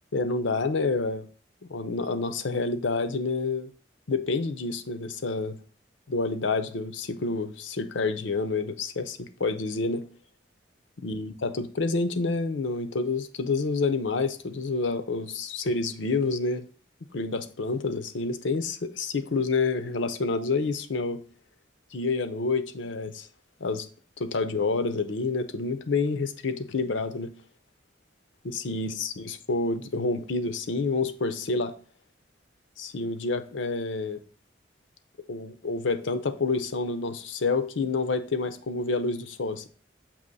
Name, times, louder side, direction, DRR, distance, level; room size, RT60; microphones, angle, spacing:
voice 1, 0.1-1.3 1.7-3.7 4.1-5.6 6.1-10.1 11.0-16.6 17.1-21.2 21.9-23.3 23.6-23.9 24.2-27.3 28.4-31.7 32.8-34.2 35.3-39.7, left 3 dB, 85° left, 0.7 m, -28 dB
7.0 x 3.0 x 5.3 m
head